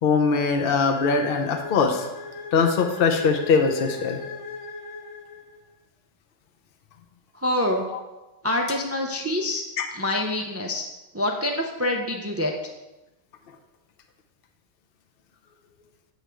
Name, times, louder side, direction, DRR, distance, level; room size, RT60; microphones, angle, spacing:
voice 1, 0.0-2.1 2.5-4.2 9.8-9.9, left 5 dB, 55° left, 4 dB, 0.9 m, -21 dB
sound 1, 0.9-5.7, left 4 dB, 75° left, 1.3 m, -38 dB
voice 2, 7.4-7.9 8.4-9.6 9.9-10.9 11.1-12.5, left 1 dB, 20° right, 2 dB, 0.4 m, -26 dB
8.1 x 3.4 x 6.1 m, 1.0 s
omnidirectional pair, 1.2 m